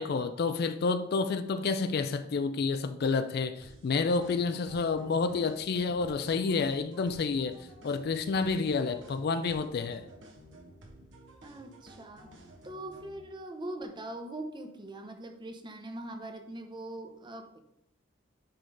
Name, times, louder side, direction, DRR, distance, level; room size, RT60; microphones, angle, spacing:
voice 1, 0.0-10.1, left 4 dB, 50° left, 0.4 m, -29 dB
sound 1, 3.6-13.2, right 1 dB, 65° right, 1.2 m, -53 dB
voice 2, 11.4-12.3 12.6-17.6, right 1 dB, 25° right, 0.7 m, -42 dB
9.3 x 3.7 x 3.8 m
head